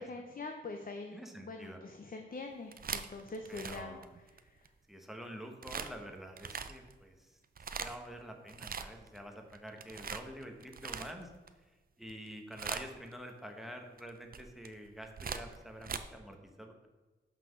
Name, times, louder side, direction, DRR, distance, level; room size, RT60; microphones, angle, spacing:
voice 1, 0.0-4.0, left 3 dB, 45° left, 4 dB, 0.7 m, -44 dB
voice 2, 1.1-1.8 3.5-4.1 4.9-7.4 7.8-11.3 12.0-16.9, equal, ahead, 4 dB, 1.0 m, -47 dB
sound 1, 2.5-4.7 5.6-5.9 6.4-6.9 7.4-8.1 8.5-9.2 9.5-11.5 12.0-12.3 12.5-13.1 14.0-16.0, right 6 dB, 50° right, 0.5 m, -41 dB
5.8 x 5.8 x 6.3 m, 1.2 s
wide cardioid pair, 115°, 20 cm